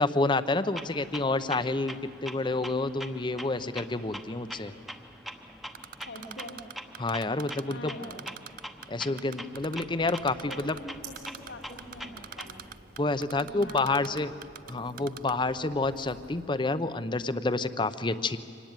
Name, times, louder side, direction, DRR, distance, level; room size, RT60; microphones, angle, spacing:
voice 1, 0.0-2.0 2.2-4.7 7.0-7.9 8.9-10.7 13.0-14.3 14.7-18.4, left 3 dB, 25° left, 13 dB, 0.7 m, -28 dB
Clock, 0.8-12.8, equal, ahead, 1.0 m, -44 dB
Typing, 5.7-7.7 8.0-8.9 9.2-10.8 11.2-11.5 11.8-14.7 15.0-15.3, right 9 dB, 50° right, 0.5 m, -42 dB
voice 2, 6.0-6.6 7.7-8.3 10.2-12.6 13.4-15.3, left 1 dB, 85° left, 2 dB, 2.7 m, -45 dB
sound 1, 9.5-16.5, right 2 dB, 70° right, 7.0 m, -52 dB
25.0 x 18.5 x 9.0 m, 2.6 s
head